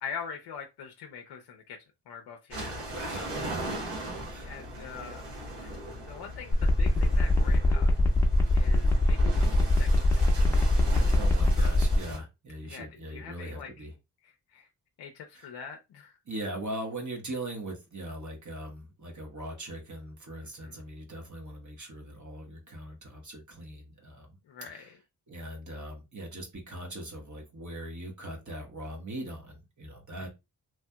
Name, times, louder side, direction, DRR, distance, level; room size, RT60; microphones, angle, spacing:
voice 1, 0.0-1.8 2.1-2.7 3.1-3.3 4.4-5.3 5.6-5.8 6.1-7.9 8.5-9.3 9.6-10.5 11.6-11.8 12.6-13.7 14.2-14.7 15.0-16.1 20.4-20.8 24.5-25.0 30.2-30.3, left 6 dB, 70° left, 0.7 m, -43 dB
voice 2, 2.5-3.7 4.3-4.5 11.1-13.9 15.3-15.5 16.3-24.4 24.7-24.9 25.3-30.3, right 1 dB, 45° right, 1.3 m, -40 dB
sound 1, 2.5-12.2, equal, 70° right, 1.3 m, -38 dB
sound 2, 6.5-12.0, left 2 dB, 5° left, 0.9 m, -23 dB
3.1 x 2.6 x 2.2 m
supercardioid pair, 40°, 41 cm